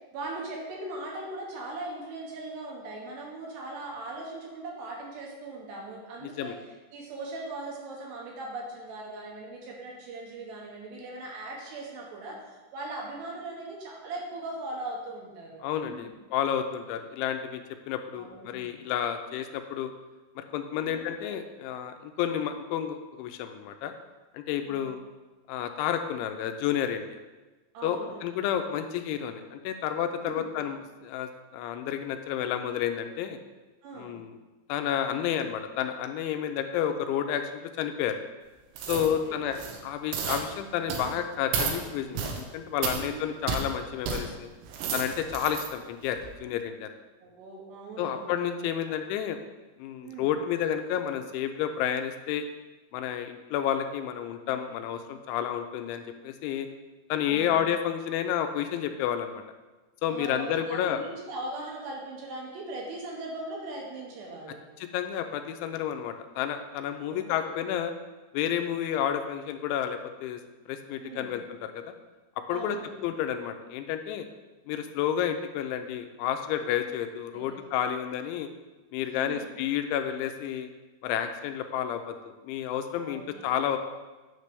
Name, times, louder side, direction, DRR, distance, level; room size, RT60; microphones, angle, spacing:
voice 1, 0.1-6.5 6.9-16.1 18.2-18.7 20.8-21.0 24.7-24.9 27.7-28.3 30.2-30.5 33.8-34.2 38.9-39.6 42.9-43.3 47.2-48.3 50.0-50.3 57.2-57.6 60.0-64.6 67.0-67.6 71.0-71.4 72.5-72.9 77.3-77.6 79.2-79.7 82.9-83.5, right 2 dB, 70° right, -1 dB, 3.2 m, -40 dB
voice 2, 6.2-6.6 15.6-19.9 20.4-23.9 24.3-25.0 25.5-27.0 27.8-33.4 34.0-34.3 34.7-38.2 38.9-39.6 39.8-44.5 44.9-46.9 48.0-49.4 49.8-52.5 52.9-56.7 57.1-59.4 60.0-61.0 64.8-67.9 68.3-70.4 70.7-71.8 72.5-72.8 73.0-74.3 74.7-78.5 78.9-80.7 81.0-83.8, left 9 dB, 85° left, 7 dB, 2.9 m, -30 dB
sound 1, 38.8-39.1 39.5-39.8 40.1-40.4 40.9-41.1 41.5-41.8 42.2-42.4 42.8-43.0 43.5-43.6 44.1-44.2 44.6-45.7 46.2-46.3, right 6 dB, 85° right, 3.2 m, -31 dB
9.5 x 3.2 x 6.7 m, 1.2 s
omnidirectional pair, 5.4 m